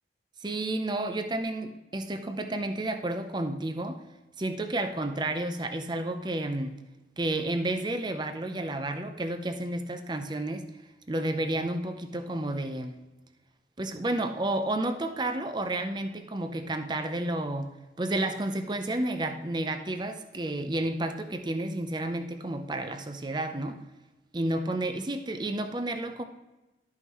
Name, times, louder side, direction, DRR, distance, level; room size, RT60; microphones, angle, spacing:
voice 1, 0.4-4.0 4.4-6.8 7.2-10.6 11.1-13.0 13.8-17.7 18.0-23.8 24.3-26.2, right 1 dB, 25° right, 7 dB, 0.6 m, -31 dB
12.5 x 5.7 x 3.1 m, 1.1 s
head